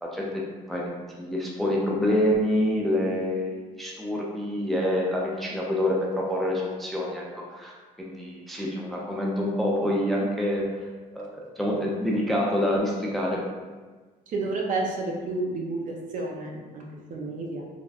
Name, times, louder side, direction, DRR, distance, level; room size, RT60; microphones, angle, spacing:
voice 1, 1.2-10.7 11.1-13.4, left 1 dB, ahead, -3 dB, 0.4 m, -27 dB
voice 2, 14.3-17.6, right 3 dB, 50° right, -1 dB, 0.6 m, -31 dB
3.3 x 2.2 x 2.4 m, 1.4 s
cardioid pair, 110°, 17 cm